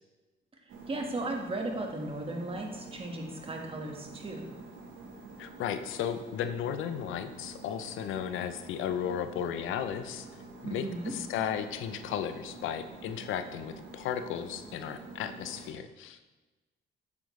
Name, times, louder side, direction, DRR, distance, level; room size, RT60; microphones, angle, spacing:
sound 1, 0.7-15.7, right 3 dB, 85° right, 1.3 m, -48 dB
voice 1, 0.9-4.6 10.6-11.1, right 2 dB, 30° right, 1 dB, 1.6 m, -36 dB
voice 2, 5.4-10.3 10.6-16.3, left 9 dB, 85° left, 10 dB, 0.6 m, -35 dB
8.5 x 7.8 x 3.2 m, 1.2 s
cardioid pair, 90°, 20 cm